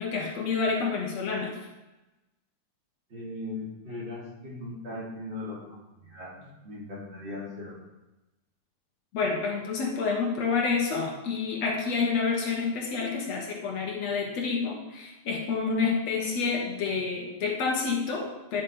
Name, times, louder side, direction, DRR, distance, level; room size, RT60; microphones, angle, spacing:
voice 1, 0.0-1.5 9.1-18.6, left 5 dB, 65° left, -1 dB, 2.5 m, -28 dB
voice 2, 3.1-7.8, left 2 dB, 40° right, -7 dB, 3.4 m, -39 dB
10.0 x 6.4 x 5.4 m, 1.0 s
omnidirectional pair, 3.4 m